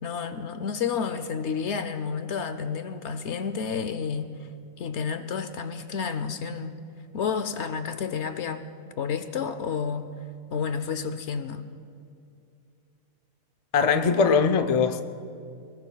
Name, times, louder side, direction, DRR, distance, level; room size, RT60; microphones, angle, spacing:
voice 1, 0.0-4.5 4.8-6.8 7.1-8.6 9.0-10.1 10.5-11.7, left 6 dB, 65° left, 10 dB, 0.9 m, -30 dB
voice 2, 13.7-15.0, left 5 dB, 40° left, 7 dB, 0.6 m, -21 dB
24.0 x 20.5 x 2.3 m, 2.5 s
omnidirectional pair, 1.4 m